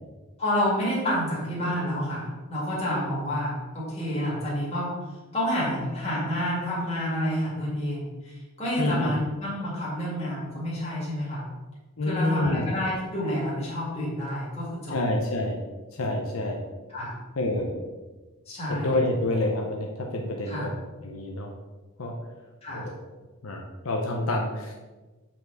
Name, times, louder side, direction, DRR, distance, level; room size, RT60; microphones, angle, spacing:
voice 1, 0.4-5.0 5.3-11.4 12.1-15.0 16.9-17.1 18.5-19.0 20.5-20.7 22.6-22.9, equal, 30° left, -7 dB, 2.2 m, -29 dB
voice 2, 8.8-9.1 12.0-12.7 14.9-15.6 15.9-16.6 17.4-17.8 18.7-20.7 21.0-21.5 22.0-22.2 22.7-23.0 23.4-24.7, left 1 dB, 75° left, 0 dB, 0.8 m, -28 dB
7.3 x 4.5 x 4.0 m, 1.2 s
head